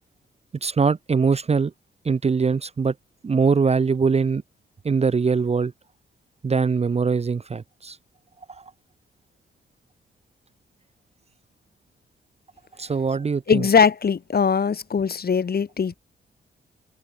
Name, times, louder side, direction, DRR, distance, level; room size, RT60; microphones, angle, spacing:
voice 1, 0.6-1.7 2.0-2.9 3.2-4.4 4.8-5.7 6.4-8.0 8.5-8.6 12.8-13.6, right 5 dB, 30° right, 0.6 m, -22 dB
voice 2, 13.5-15.9, left 6 dB, 50° left, 1.5 m, -20 dB
supercardioid pair, 55°, 21 cm